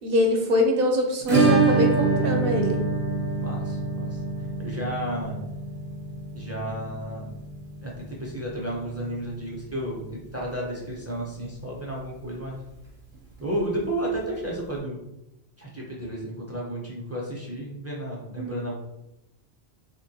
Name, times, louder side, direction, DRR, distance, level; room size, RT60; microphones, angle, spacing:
voice 1, 0.0-2.8 18.4-18.5, left 1 dB, 65° right, 1 dB, 0.8 m, -24 dB
Acoustic guitar / Strum, 1.3-9.9 10.1-10.2 10.5-10.6 11.0-11.1 13.1-13.2 14.4-14.5, right 3 dB, 40° right, 1.0 m, -26 dB
voice 2, 3.3-5.4 6.3-7.3 7.8-12.6 13.4-15.0 15.6-18.7, right 1 dB, 20° right, -4 dB, 0.4 m, -32 dB
3.5 x 2.2 x 2.7 m, 0.88 s
omnidirectional pair, 1.1 m